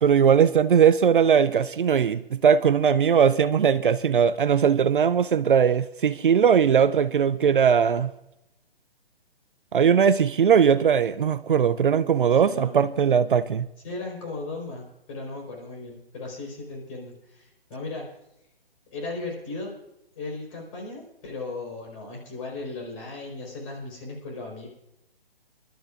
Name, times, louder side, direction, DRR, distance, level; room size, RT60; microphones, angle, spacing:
voice 1, 0.0-8.1 9.7-13.7, right 7 dB, 60° right, 0.5 m, -20 dB
voice 2, 12.3-13.0 13.8-18.0 18.9-19.7 20.2-24.7, left 3 dB, 35° left, 4.3 m, -36 dB
28.0 x 12.0 x 2.5 m
figure-of-eight pair, 135°, 30 cm